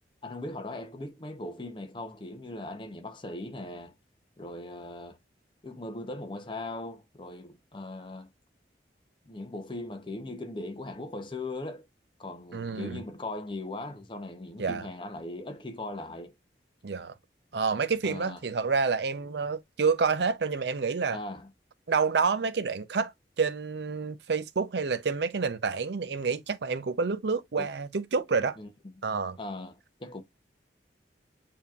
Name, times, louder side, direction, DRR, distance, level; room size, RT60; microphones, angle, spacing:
voice 1, 0.2-3.9 4.4-5.2 5.6-8.3 9.3-11.8 12.2-16.3 18.0-18.4 21.1-21.5 27.5-27.7 28.6-28.9 29.4-30.2, left 2 dB, 25° left, 0.7 m, -39 dB
voice 2, 12.5-13.0 14.6-14.9 16.8-17.1 17.5-21.2 21.9-23.1 23.4-28.6 29.0-29.4, right 5 dB, 70° right, 0.6 m, -28 dB
6.9 x 2.9 x 2.4 m
head